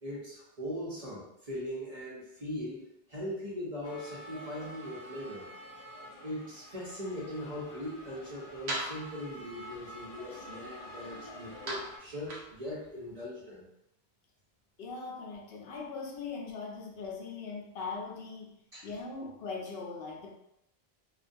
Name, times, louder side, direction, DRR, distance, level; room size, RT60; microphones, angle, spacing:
voice 1, 0.0-5.5 6.2-13.7 18.7-18.9, left 1 dB, 40° right, -7 dB, 0.7 m, -40 dB
sound 1, 3.8-12.0, equal, 50° left, 0.4 m, -48 dB
sound 2, 6.8-13.3, right 1 dB, 75° right, 0.9 m, -44 dB
voice 2, 14.8-20.3, left 4 dB, 75° left, -1 dB, 0.8 m, -40 dB
2.4 x 2.2 x 2.5 m, 0.81 s
omnidirectional pair, 1.1 m